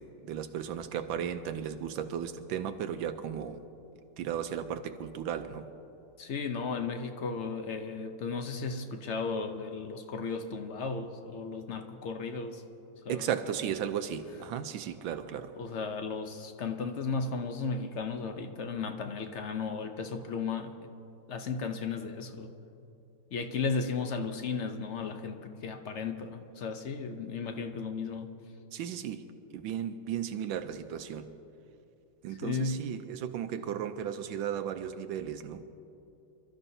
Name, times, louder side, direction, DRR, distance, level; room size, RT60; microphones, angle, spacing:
voice 1, 0.0-3.6 4.2-5.6 13.1-15.5 28.7-29.2 29.5-31.3 32.2-35.6, right 9 dB, 80° right, 8 dB, 1.4 m, -35 dB
voice 2, 6.2-12.6 13.0-13.3 15.6-20.7 21.3-22.5 23.3-28.3 32.4-32.8, left 4 dB, 65° left, 6 dB, 0.7 m, -35 dB
28.0 x 13.0 x 2.7 m, 2.9 s
omnidirectional pair, 2.2 m